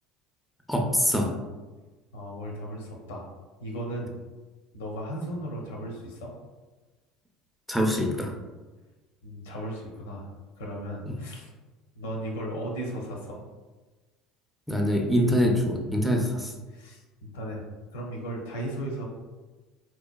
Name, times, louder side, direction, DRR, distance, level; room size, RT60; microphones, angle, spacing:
voice 1, 0.7-1.3 7.7-8.3 11.1-11.2 14.7-16.5, equal, ahead, 1 dB, 0.4 m, -24 dB
voice 2, 2.1-3.2 3.6-4.1 4.7-6.3 9.2-10.3 10.6-11.5 12.0-13.4 16.7-17.6 17.9-19.0, right 1 dB, 75° left, -1 dB, 0.6 m, -36 dB
2.8 x 2.1 x 2.2 m, 1.2 s
hypercardioid pair, 70°, 0 cm